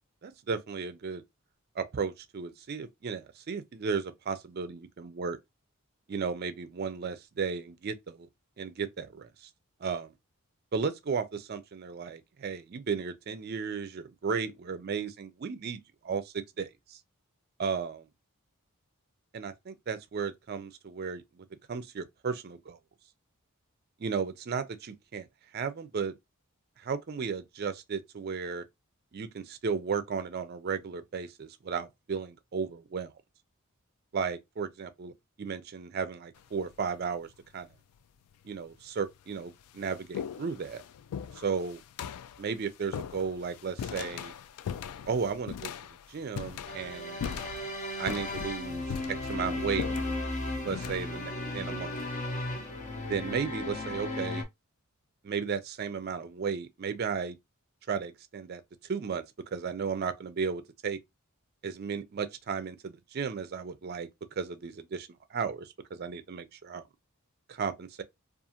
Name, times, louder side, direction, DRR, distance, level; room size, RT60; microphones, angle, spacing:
voice 1, 0.2-1.2 1.8-5.4 6.1-8.3 8.6-9.5 9.8-10.1 10.7-17.0 17.6-18.0 19.3-22.8 24.0-25.3 25.5-26.2 26.8-28.6 29.1-33.1 34.1-35.1 35.4-37.3 37.5-37.7 38.4-40.8 41.4-41.8 42.4-44.3 45.1-45.7 46.1-47.4 48.0-49.9 50.6-51.9 53.1-54.4 55.2-57.4 57.9-59.2 59.5-61.0 61.6-64.1 64.4-66.8 67.5-68.0, right 5 dB, 45° right, 0.4 m, -34 dB
sound 1, 36.4-36.8 37.7-37.8 38.7-38.8 39.2-52.7, left 8 dB, 85° left, 0.3 m, -41 dB
sound 2, 46.7-54.4, left 2 dB, 35° left, 0.6 m, -35 dB
2.5 x 2.4 x 2.7 m
head